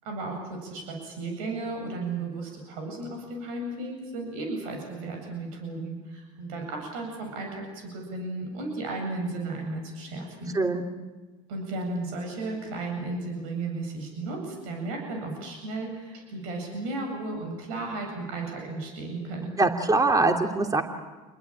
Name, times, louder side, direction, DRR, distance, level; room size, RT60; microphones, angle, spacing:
voice 1, 0.0-10.6 11.5-19.5, right 2 dB, 80° right, 2 dB, 7.9 m, -34 dB
voice 2, 10.5-10.8 19.6-20.8, right 3 dB, 20° right, 5 dB, 3.1 m, -23 dB
28.5 x 21.5 x 9.0 m, 1.2 s
hypercardioid pair, 90°, 18 cm